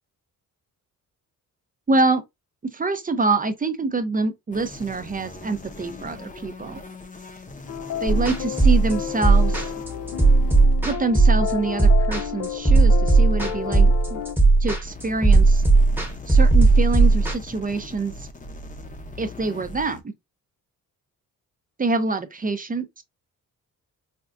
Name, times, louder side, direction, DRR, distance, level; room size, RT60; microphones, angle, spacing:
voice 1, 1.9-2.2 2.6-6.8 8.0-9.7 10.8-14.2 14.6-15.6 16.3-18.3 19.2-20.1 21.8-23.0, right 3 dB, 25° right, 0.5 m, -26 dB
sound 1, 4.5-20.0, left 2 dB, 20° left, 0.7 m, -41 dB
sound 2, 7.7-14.4, left 9 dB, 60° left, 0.5 m, -32 dB
sound 3, 8.1-17.3, right 3 dB, 5° right, 1.0 m, -16 dB
4.3 x 2.3 x 2.5 m
cardioid pair, 90°, 36 cm